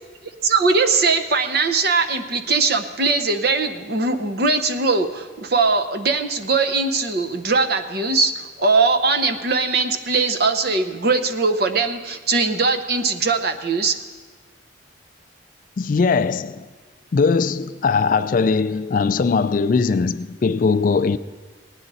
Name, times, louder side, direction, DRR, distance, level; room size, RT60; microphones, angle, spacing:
voice 1, 0.4-14.0, right 4 dB, 55° right, 0.8 m, -20 dB
voice 2, 15.8-16.7 17.1-21.2, left 4 dB, 45° left, 0.3 m, -20 dB
18.0 x 10.0 x 4.1 m
head